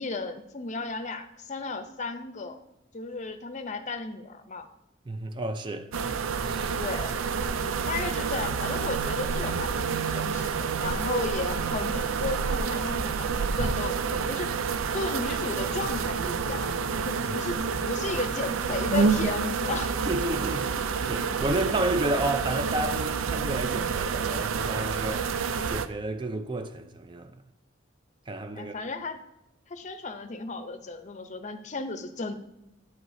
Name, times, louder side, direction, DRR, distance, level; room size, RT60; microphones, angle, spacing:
voice 1, 0.0-2.6 2.9-4.7 6.8-7.2 7.9-14.6 14.9-19.9 28.5-29.2 29.7-32.3, left 3 dB, 35° left, 0.6 m, -34 dB
voice 2, 5.1-5.9 6.4-6.8 17.3-17.5 20.0-27.3 28.3-28.7, right 2 dB, 25° right, 0.4 m, -31 dB
sound 1, 5.9-25.9, right 5 dB, 90° right, 0.4 m, -28 dB
9.0 x 8.0 x 2.7 m
head